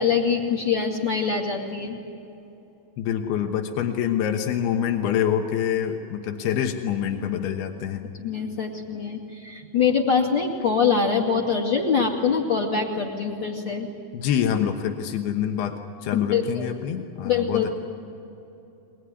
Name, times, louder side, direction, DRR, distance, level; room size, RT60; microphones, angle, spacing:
voice 1, 0.0-2.0 8.2-13.9 16.1-16.7 17.2-17.7, left 6 dB, 35° left, 1 dB, 2.6 m, -24 dB
voice 2, 3.0-8.0 14.1-17.7, left 9 dB, 90° left, 4 dB, 3.1 m, -26 dB
23.5 x 20.5 x 9.7 m, 2.9 s
omnidirectional pair, 4.4 m